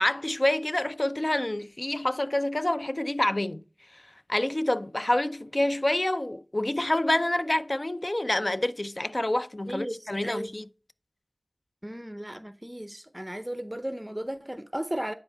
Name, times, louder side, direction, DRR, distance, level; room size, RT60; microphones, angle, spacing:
voice 1, 0.0-3.6 3.9-4.0 4.3-10.6, left 1 dB, 40° left, 0.5 m, -27 dB
voice 2, 9.7-10.5 11.8-15.1, right 1 dB, 15° right, 0.6 m, -35 dB
9.9 x 4.2 x 3.3 m
wide cardioid pair, 45°, 0 cm